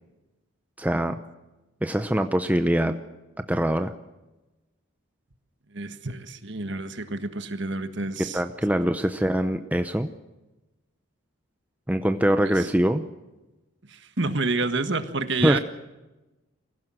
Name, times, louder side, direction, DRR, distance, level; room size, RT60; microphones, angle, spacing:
voice 1, 0.8-1.2 1.8-3.0 3.5-3.9 8.3-10.1 11.9-13.0 15.4-15.6, equal, 5° right, 8 dB, 0.7 m, -23 dB
voice 2, 5.7-8.4 12.4-12.7 13.9-15.6, right 3 dB, 55° right, 9 dB, 1.6 m, -29 dB
24.5 x 16.0 x 7.7 m, 1.1 s
head